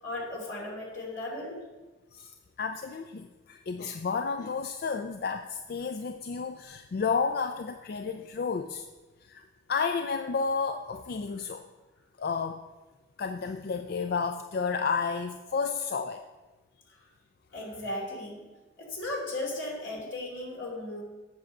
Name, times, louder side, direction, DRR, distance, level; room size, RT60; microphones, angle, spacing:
voice 1, 0.0-1.6 17.5-18.4 18.8-21.0, left 1 dB, 80° left, -2 dB, 2.8 m, -36 dB
voice 2, 2.1-8.9 9.2-11.7 12.2-12.6 13.2-16.2, left 5 dB, 50° left, 7 dB, 0.4 m, -31 dB
8.2 x 6.2 x 6.5 m, 1.2 s
head